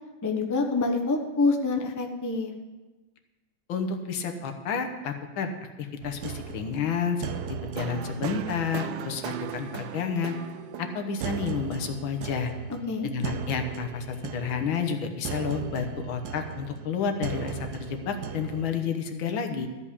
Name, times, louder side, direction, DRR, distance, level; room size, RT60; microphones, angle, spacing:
voice 1, 0.2-2.5 12.7-13.1, left 3 dB, 20° left, 3 dB, 0.5 m, -26 dB
voice 2, 3.7-5.5 5.8-10.4 10.8-12.5 13.0-19.7, left 6 dB, 80° left, 5 dB, 1.9 m, -30 dB
sound 1, 6.0-18.9, right 8 dB, 70° right, 1.0 m, -37 dB
13.5 x 5.3 x 8.5 m, 1.2 s
omnidirectional pair, 2.2 m